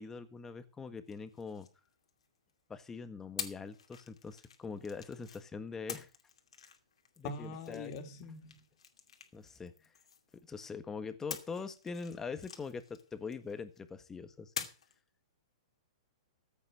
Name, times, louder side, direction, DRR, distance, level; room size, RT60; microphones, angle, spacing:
voice 1, 0.0-1.7 2.7-6.1 7.2-7.9 9.3-9.9 10.5-14.7, left 5 dB, 15° left, 1.5 m, -43 dB
sound 1, 1.1-2.5 3.4-5.4 5.9-10.6 11.3-13.8 14.6-15.0, left 7 dB, 90° left, 2.5 m, -47 dB
voice 2, 7.2-8.6, left 3 dB, 45° left, 2.9 m, -43 dB
15.0 x 8.4 x 6.2 m
hypercardioid pair, 135°, 3 cm